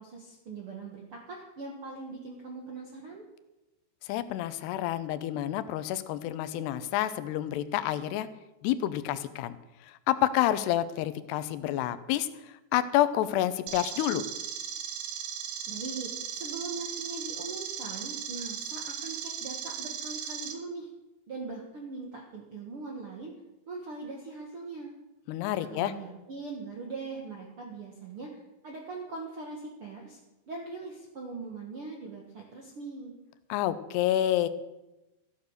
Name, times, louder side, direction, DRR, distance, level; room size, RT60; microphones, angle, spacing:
voice 1, 0.0-3.2 15.7-20.9 21.3-23.3 23.7-24.9 25.6-30.2 30.5-33.1, right 3 dB, 80° right, 0 dB, 1.2 m, -41 dB
voice 2, 4.0-8.3 8.6-9.6 9.9-12.3 12.7-14.2 25.3-25.9 33.5-34.5, left 13 dB, 80° left, 13 dB, 2.6 m, -28 dB
sound 1, 13.7-20.5, right 8 dB, 60° right, 2.8 m, -37 dB
14.5 x 9.6 x 6.6 m, 0.99 s
omnidirectional pair, 5.2 m